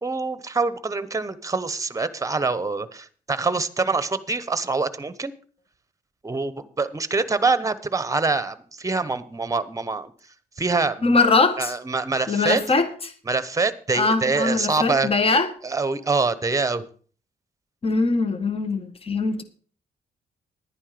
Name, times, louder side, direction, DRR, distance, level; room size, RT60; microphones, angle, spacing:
voice 1, 0.0-5.3 6.2-10.1 10.6-11.2 11.6-12.6 13.3-15.1 15.6-16.8, right 4 dB, 20° right, 14 dB, 1.0 m, -25 dB
voice 2, 11.0-11.7 12.3-12.9 13.9-15.5 17.8-19.4, left 3 dB, 35° left, 10 dB, 1.5 m, -21 dB
11.0 x 9.9 x 5.0 m, 0.43 s
cardioid pair, 105°, 16 cm